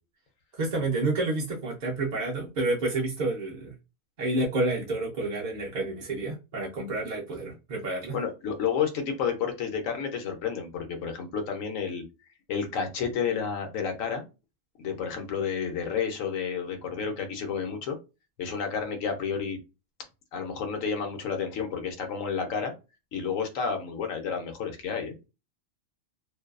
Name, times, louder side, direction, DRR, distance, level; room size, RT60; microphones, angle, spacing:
voice 1, 0.5-3.7 4.2-8.2, right 2 dB, 55° right, 0.5 m, -29 dB
voice 2, 8.1-12.0 12.5-14.3 14.8-18.0 18.4-19.6 20.3-22.7 23.1-25.2, left 6 dB, 85° left, 1.1 m, -30 dB
2.6 x 2.2 x 2.3 m
omnidirectional pair, 1.3 m